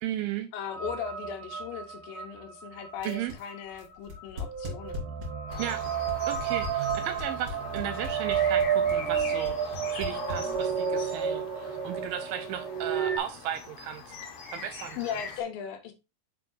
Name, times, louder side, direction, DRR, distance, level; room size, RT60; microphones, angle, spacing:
voice 1, 0.0-0.5 3.0-3.3 5.6-5.8 6.3-9.6 9.9-14.2 14.5-15.0, right 10 dB, 80° right, 2.2 m, -35 dB
voice 2, 0.5-5.1 7.7-8.0 15.0-15.9, left 8 dB, 75° left, 2.4 m, -38 dB
sound 1, 0.7-13.2, right 7 dB, 60° right, 3.1 m, -31 dB
sound 2, 3.0-10.9, left 2 dB, 45° right, 2.4 m, -39 dB
sound 3, 5.5-15.4, left 5 dB, 55° left, 2.5 m, -42 dB
8.1 x 6.2 x 2.6 m
omnidirectional pair, 4.6 m